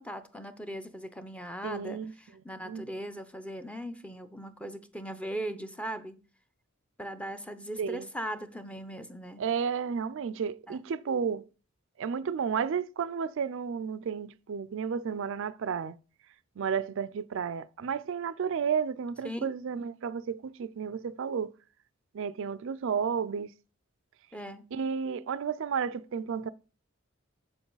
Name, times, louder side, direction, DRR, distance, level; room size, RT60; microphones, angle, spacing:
voice 1, 0.0-6.2 7.0-9.4 10.7-10.8 19.2-19.5 24.3-24.7, equal, 5° left, 0.6 m, -39 dB
voice 2, 1.6-2.1 2.6-2.9 7.8-8.1 9.4-11.4 12.0-16.0 16.6-21.5 22.1-23.5 24.7-26.5, right 6 dB, 60° right, 0.4 m, -32 dB
7.6 x 7.0 x 3.9 m
head